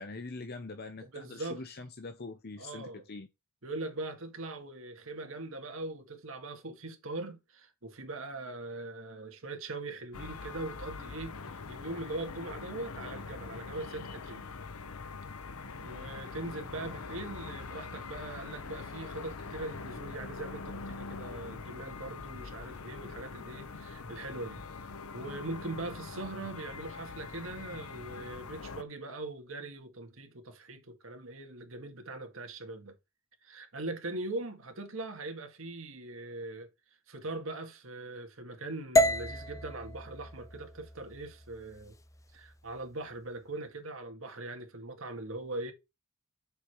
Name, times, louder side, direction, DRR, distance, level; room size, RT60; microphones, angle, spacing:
voice 1, 0.0-3.3, left 3 dB, 50° left, 0.8 m, -43 dB
voice 2, 1.0-1.6 2.6-3.0 3.6-14.5 15.8-33.0 33.4-36.7 37.1-41.9 42.3-45.7, right 2 dB, 65° right, 1.9 m, -41 dB
sound 1, 10.1-28.8, left 4 dB, 90° left, 0.8 m, -43 dB
sound 2, 39.0-43.1, left 1 dB, 15° left, 0.6 m, -31 dB
6.7 x 4.9 x 4.7 m
head